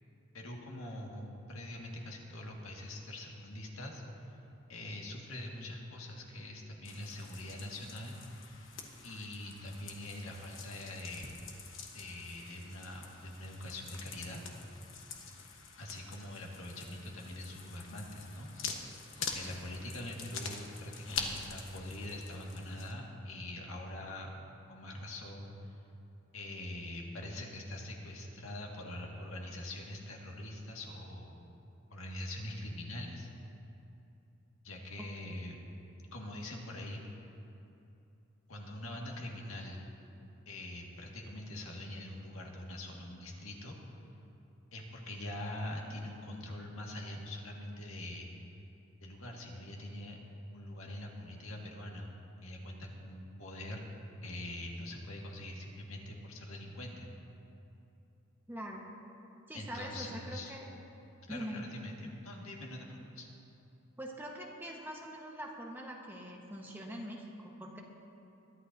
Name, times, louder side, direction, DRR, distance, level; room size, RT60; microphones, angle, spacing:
voice 1, 0.3-4.0 4.7-8.5 9.0-11.3 11.9-14.4 15.8-18.9 19.2-24.4 24.7-25.7 26.3-31.5 31.9-33.3 34.6-35.6 36.1-37.0 38.5-39.9 40.5-43.8 44.7-48.3 49.0-50.2 50.5-52.1 52.4-53.9 54.2-57.1 59.5-60.6 61.3-63.3, left 1 dB, 85° left, -1 dB, 1.8 m, -43 dB
sound 1, 6.8-22.9, left 5 dB, 70° left, 1.1 m, -45 dB
voice 2, 35.0-35.4 58.5-58.9 59.5-60.7 61.3-61.7 64.0-67.8, equal, 10° right, -1 dB, 1.2 m, -43 dB
22.0 x 11.5 x 2.7 m, 2.9 s
head